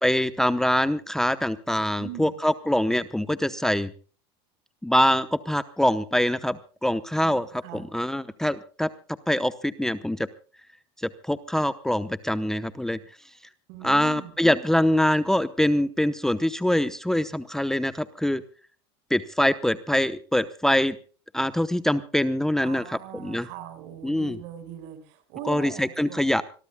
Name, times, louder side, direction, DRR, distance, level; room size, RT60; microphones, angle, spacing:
voice 1, 0.0-3.9 4.8-8.9 9.3-10.3 11.0-13.0 13.8-18.4 19.1-21.0 21.3-23.5 24.0-24.4 25.5-26.4, left 1 dB, 5° left, 12 dB, 0.8 m, -24 dB
voice 2, 2.0-2.4 7.1-7.9 13.7-14.4 22.6-26.2, right 10 dB, 65° right, 11 dB, 5.3 m, -40 dB
25.5 x 22.0 x 2.3 m, 0.39 s
supercardioid pair, 135°, 14 cm